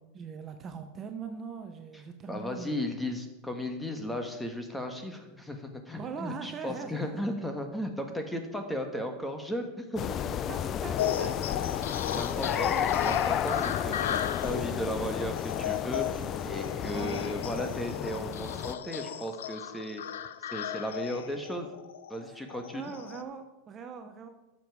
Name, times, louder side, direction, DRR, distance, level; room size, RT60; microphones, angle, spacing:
voice 1, 0.1-2.7 6.0-7.2 10.5-11.4 12.7-12.9 16.8-17.4 22.3-22.4 22.7-24.3, right 6 dB, 30° right, 6 dB, 0.9 m, -41 dB
voice 2, 2.3-10.5 12.1-12.7 13.0-20.0 20.4-21.7 22.1-22.8, equal, 5° left, 5 dB, 1.4 m, -35 dB
sound 1, 10.0-18.7, left 9 dB, 35° left, 0.4 m, -32 dB
sound 2, 11.0-23.2, left 10 dB, 90° left, 0.6 m, -36 dB
12.0 x 7.0 x 4.8 m, 1.0 s
supercardioid pair, 125°, 0 cm